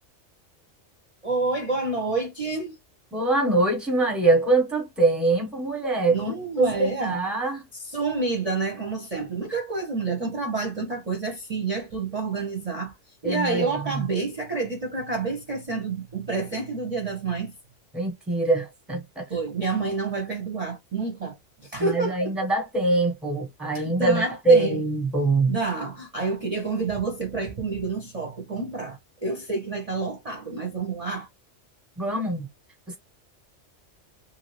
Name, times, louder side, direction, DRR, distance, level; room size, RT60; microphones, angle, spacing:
voice 1, 1.2-2.8 6.1-7.2 7.7-12.9 13.2-17.5 19.3-22.3 23.7-24.8 25.5-31.3, right 4 dB, 35° right, 0.7 m, -29 dB
voice 2, 3.1-7.6 13.2-14.0 17.9-19.3 21.8-25.6 32.0-32.5 32.9-33.0, right 3 dB, ahead, 0.9 m, -23 dB
2.8 x 2.7 x 3.0 m
omnidirectional pair, 1.3 m